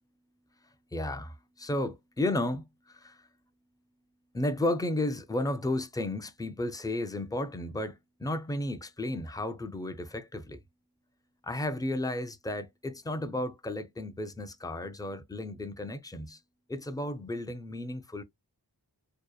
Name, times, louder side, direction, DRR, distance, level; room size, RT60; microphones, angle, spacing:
voice 1, 0.9-3.3 4.3-10.6 11.4-16.4 16.7-18.2, left 1 dB, 10° left, 0.4 m, -33 dB
2.7 x 2.1 x 2.2 m
wide cardioid pair, 45°, 39 cm